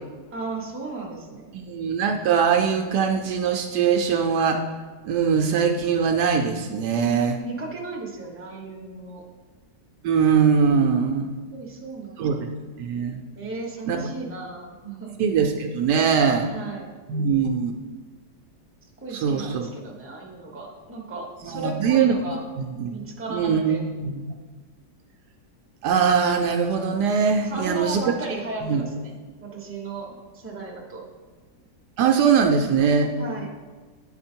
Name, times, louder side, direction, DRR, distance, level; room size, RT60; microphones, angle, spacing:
voice 1, 0.3-1.5 7.4-9.2 11.5-12.5 13.4-15.2 16.1-16.9 19.0-22.4 22.9-23.8 27.4-31.0 33.2-33.5, right 3 dB, 10° right, -1 dB, 0.8 m, -35 dB
voice 2, 1.5-4.6 5.0-7.4 10.0-11.3 12.2-12.5 12.8-13.2 13.9-14.1 15.2-16.5 17.1-17.7 19.1-19.7 21.4-22.2 22.6-24.3 25.8-28.0 28.6-28.8 32.0-33.1, right 6 dB, 75° right, 4 dB, 1.1 m, -22 dB
9.7 x 4.3 x 4.4 m, 1.4 s
omnidirectional pair, 1.9 m